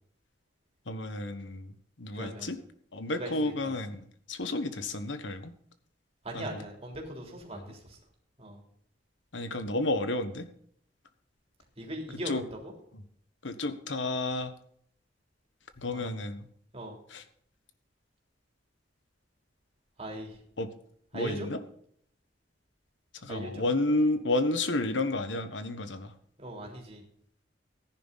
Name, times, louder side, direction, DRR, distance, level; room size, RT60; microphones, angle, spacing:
voice 1, 0.9-2.6 2.9-5.5 6.3-6.7 7.5-7.7 9.3-10.5 12.2-12.4 12.9-13.0 13.4-14.5 15.8-16.5 17.1-17.2 20.6-20.7 21.1-21.6 23.2-26.1, left 2 dB, 75° left, 9 dB, 1.3 m, -31 dB
voice 2, 2.1-2.5 3.1-3.5 6.2-8.0 8.4-8.6 11.8-12.7 15.9-16.1 16.7-17.0 20.0-20.4 21.1-21.5 23.3-23.6 26.4-27.0, equal, 35° right, 1 dB, 3.5 m, -39 dB
14.5 x 10.5 x 4.1 m, 0.64 s
head